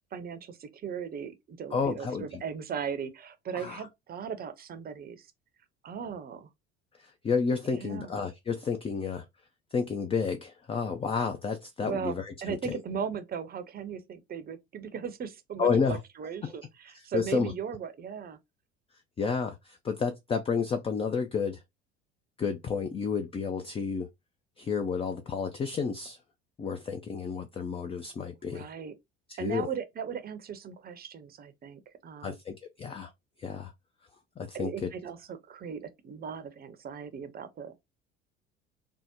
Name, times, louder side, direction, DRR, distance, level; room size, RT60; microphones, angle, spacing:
voice 1, 0.1-5.3 5.8-6.5 7.6-8.1 11.8-12.1 12.4-18.4 28.5-28.9 29.4-32.4 34.5-37.8, right 7 dB, 30° right, 0.7 m, -38 dB
voice 2, 1.7-2.4 3.5-3.9 7.0-9.2 9.7-12.8 15.6-16.0 16.4-16.5 16.9-17.5 19.2-21.6 22.4-24.1 24.6-26.2 26.6-28.7 29.3-29.7 32.2-33.1 33.4-33.7 34.4-34.9, left 5 dB, 20° left, 0.4 m, -31 dB
3.5 x 2.1 x 2.9 m
hypercardioid pair, 65°, 32 cm